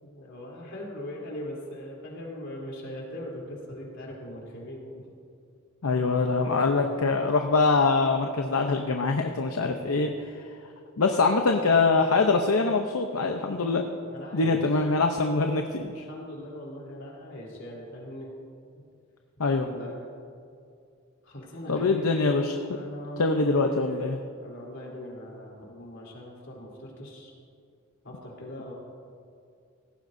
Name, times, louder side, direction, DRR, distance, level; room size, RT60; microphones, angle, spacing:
voice 1, 0.0-5.0 9.6-9.7 14.0-14.6 15.8-18.3 18.7-18.8 19.4-20.0 21.2-22.3 22.7-27.3 28.0-28.7, left 1 dB, 60° left, -3 dB, 3.5 m, -40 dB
voice 2, 5.8-10.5 11.0-13.8 14.3-16.0 19.4-19.7 21.7-22.7 23.2-24.2, left 3 dB, 80° left, 4 dB, 0.7 m, -24 dB
18.0 x 15.5 x 2.7 m, 2.3 s
head